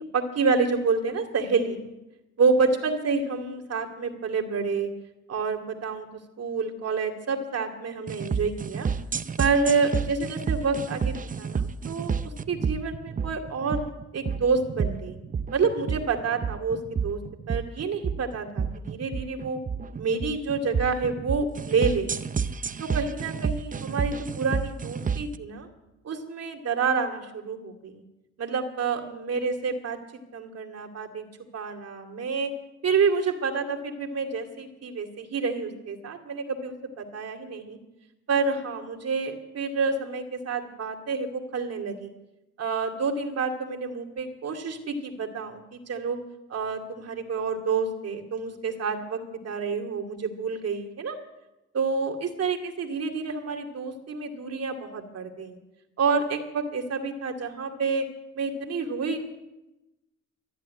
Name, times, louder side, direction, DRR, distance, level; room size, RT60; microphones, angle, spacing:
voice 1, 0.1-1.9 2.4-4.9 5.3-6.1 6.4-8.9 9.4-12.1 12.5-13.9 14.1-15.2 15.5-17.2 17.5-19.6 20.0-22.1 22.8-25.7 26.0-28.0 28.4-30.0 30.3-31.3 31.5-32.5 32.8-37.8 38.3-42.1 42.6-46.2 46.5-51.2 51.7-55.6 56.0-58.0 58.3-59.2, right 4 dB, 55° right, 4 dB, 2.5 m, -28 dB
sound 1, 8.1-25.4, right 6 dB, 25° right, 0.6 m, -30 dB
13.5 x 10.0 x 9.6 m, 0.97 s
cardioid pair, 90°, 30 cm